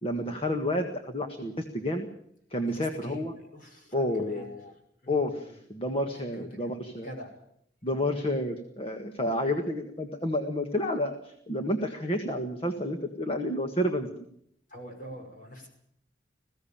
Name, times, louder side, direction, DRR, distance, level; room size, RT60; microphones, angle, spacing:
voice 1, 0.0-2.1 2.5-3.3 3.9-4.7 5.1-7.1 7.8-14.1, left 1 dB, 30° left, 4 dB, 1.7 m, -30 dB
voice 2, 2.7-4.5 5.0-5.6 5.9-6.7 7.0-7.3 7.8-8.0 9.4-9.6 14.7-15.7, equal, 45° left, 3 dB, 5.8 m, -45 dB
21.0 x 16.0 x 8.8 m, 0.69 s
head